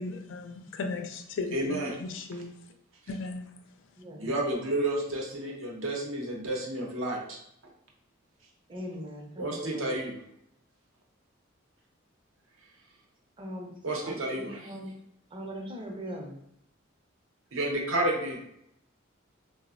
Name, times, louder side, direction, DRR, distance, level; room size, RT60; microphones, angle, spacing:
voice 1, 0.0-2.5 3.1-3.5, left 3 dB, 65° left, 0.3 m, -36 dB
voice 2, 1.5-2.0 4.2-7.4 9.4-10.1 13.8-14.6 17.5-18.4, right 1 dB, 75° right, 0.6 m, -31 dB
voice 3, 4.0-4.3 8.7-10.0 13.4-13.7 14.0-14.9 15.3-16.4, equal, 25° right, 0.5 m, -40 dB
3.3 x 2.0 x 2.4 m
head